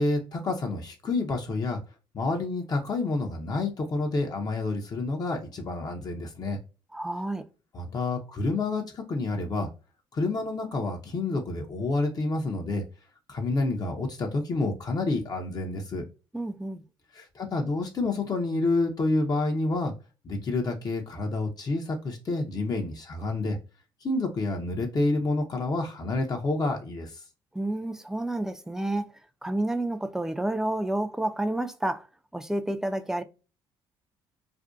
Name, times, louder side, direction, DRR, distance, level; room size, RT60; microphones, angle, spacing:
voice 1, 0.0-1.8 2.1-6.6 7.7-9.7 10.1-12.8 13.3-16.1 17.1-19.9 20.2-23.6 24.0-27.2, left 2 dB, 40° left, 0.6 m, -28 dB
voice 2, 6.9-7.5 16.3-16.8 27.5-29.1 29.4-32.1 32.3-33.2, right 1 dB, 5° right, 0.3 m, -30 dB
2.5 x 2.1 x 2.3 m
supercardioid pair, 80°, 10 cm